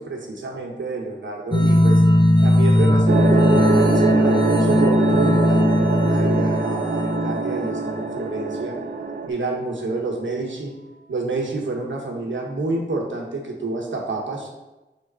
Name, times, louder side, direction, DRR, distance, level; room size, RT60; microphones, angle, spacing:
voice 1, 0.0-2.0 2.4-8.8 9.2-10.7 11.1-14.5, right 3 dB, 85° right, 0 dB, 1.2 m, -28 dB
sound 1, 1.5-8.1, left 1 dB, 25° left, 0.7 m, -18 dB
sound 2, 3.1-9.3, right 3 dB, 55° right, 0.6 m, -23 dB
5.2 x 3.9 x 5.5 m, 1.1 s
cardioid pair, 50°, 19 cm